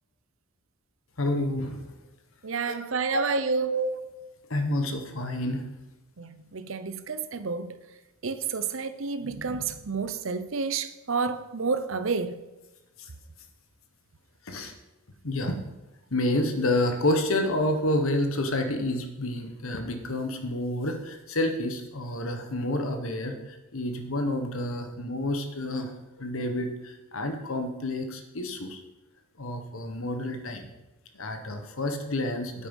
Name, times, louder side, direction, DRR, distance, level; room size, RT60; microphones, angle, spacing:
voice 1, 1.2-1.8 2.7-2.8 3.1-3.2 3.6-3.9 4.5-5.6 14.5-14.7 15.2-15.5 16.1-23.4 23.7-25.9 26.2-28.8 29.4-30.6 31.2-32.7, left 1 dB, 70° left, 1.3 m, -29 dB
voice 2, 2.4-3.7 6.2-7.7 8.2-12.4, right 4 dB, 65° right, 0.7 m, -30 dB
9.0 x 8.9 x 5.4 m
head